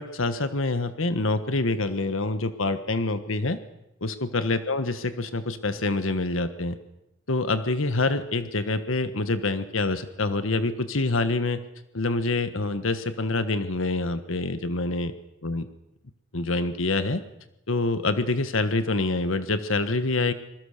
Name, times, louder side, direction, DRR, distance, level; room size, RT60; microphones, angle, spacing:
voice 1, 0.0-3.6 4.0-6.8 7.3-11.6 11.9-15.1 15.4-15.7 16.3-17.2 17.7-20.3, left 2 dB, 85° left, 11 dB, 1.4 m, -26 dB
26.0 x 22.5 x 6.7 m, 0.89 s
head